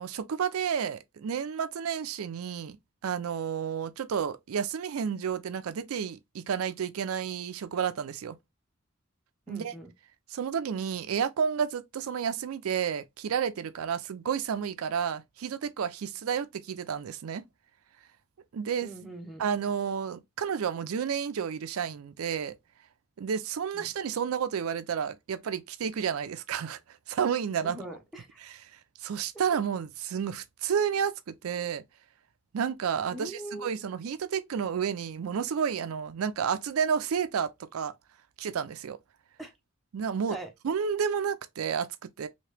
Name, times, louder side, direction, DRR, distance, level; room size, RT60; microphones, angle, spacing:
voice 1, 0.0-2.8 3.0-8.4 9.5-9.7 10.3-17.4 18.5-18.9 19.4-22.5 23.2-26.8 27.1-27.8 28.4-28.6 29.0-31.8 32.5-37.9 38.4-39.0 39.9-40.4 40.6-42.3, right 7 dB, 90° right, 0.4 m, -31 dB
voice 2, 9.5-9.9 18.8-19.4 23.7-23.9 27.6-28.4 33.1-33.7 39.4-39.5 40.3-40.5, right 1 dB, ahead, 0.7 m, -41 dB
2.9 x 2.8 x 3.2 m
head